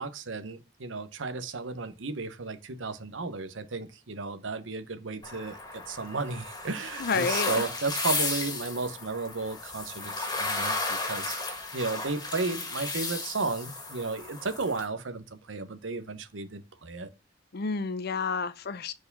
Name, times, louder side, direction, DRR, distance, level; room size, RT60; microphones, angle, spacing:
voice 1, 0.0-17.1, right 3 dB, 85° right, 0.9 m, -34 dB
sound 1, 5.2-14.8, left 3 dB, 20° left, 1.9 m, -34 dB
voice 2, 7.0-7.6 17.5-18.9, left 4 dB, 55° left, 0.6 m, -30 dB
4.8 x 4.5 x 5.3 m
head